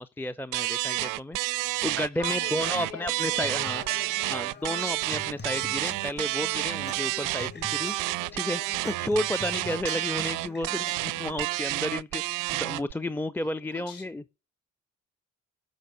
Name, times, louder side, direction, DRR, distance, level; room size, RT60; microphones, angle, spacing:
voice 1, 0.0-1.4 1.8-3.8 4.3-14.4, left 1 dB, 5° left, 0.6 m, -32 dB
sound 1, 0.5-12.9, right 20 dB, 55° right, 0.5 m, -30 dB
voice 2, 2.1-4.4 13.7-14.1, left 6 dB, 60° left, 3.9 m, -43 dB
Human voice / Acoustic guitar / Percussion, 3.4-11.4, left 5 dB, 25° left, 1.2 m, -45 dB
11.0 x 7.0 x 8.0 m
figure-of-eight pair, 40°, 38 cm